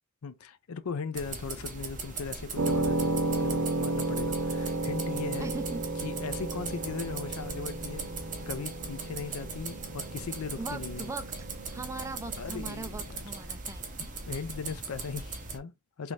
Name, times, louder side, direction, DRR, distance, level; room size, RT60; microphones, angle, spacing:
voice 1, 0.2-5.5 6.0-8.1 8.5-11.1 12.4-13.2 14.0-16.1, left 5 dB, 75° left, 0.5 m, -38 dB
sound 1, 1.1-15.6, right 4 dB, 35° right, 0.8 m, -40 dB
sound 2, 2.6-12.8, right 2 dB, 75° right, 0.8 m, -33 dB
voice 2, 5.4-5.9 10.6-11.3 11.7-13.9, right 3 dB, 15° right, 0.4 m, -39 dB
3.4 x 2.6 x 3.1 m
head